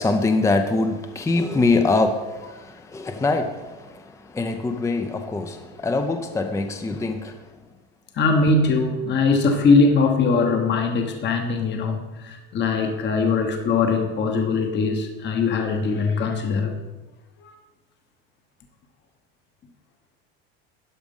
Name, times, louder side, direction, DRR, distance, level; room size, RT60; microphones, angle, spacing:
voice 1, 0.0-7.4, left 3 dB, 10° left, 0.6 m, -24 dB
voice 2, 8.1-16.8, left 4 dB, 35° left, 1.2 m, -21 dB
12.5 x 5.1 x 5.5 m
supercardioid pair, 110°, 31 cm